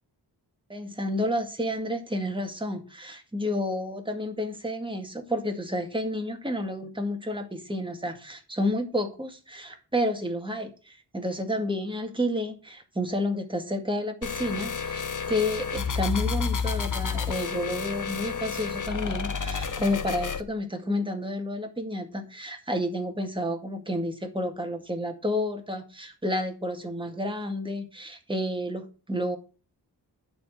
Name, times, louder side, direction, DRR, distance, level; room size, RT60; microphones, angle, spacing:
voice 1, 0.7-29.4, left 1 dB, 10° right, 4 dB, 2.0 m, -30 dB
sound 1, 14.2-20.4, left 6 dB, 45° left, 1.0 m, -30 dB
11.0 x 4.5 x 7.8 m, 0.36 s
wide cardioid pair, 85°, 41 cm